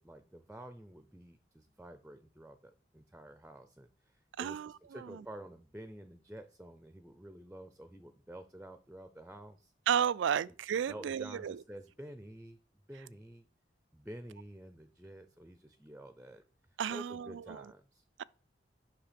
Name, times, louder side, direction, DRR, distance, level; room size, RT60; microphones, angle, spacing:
voice 1, 0.0-9.7 10.5-10.6 10.9-12.6 12.9-13.5 13.9-16.4 16.9-18.0, right 1 dB, 5° right, 0.4 m, -50 dB
voice 2, 4.4-5.2 9.9-11.6 16.8-17.6 18.2-18.3, right 8 dB, 85° right, 0.3 m, -33 dB
7.4 x 5.7 x 5.1 m
head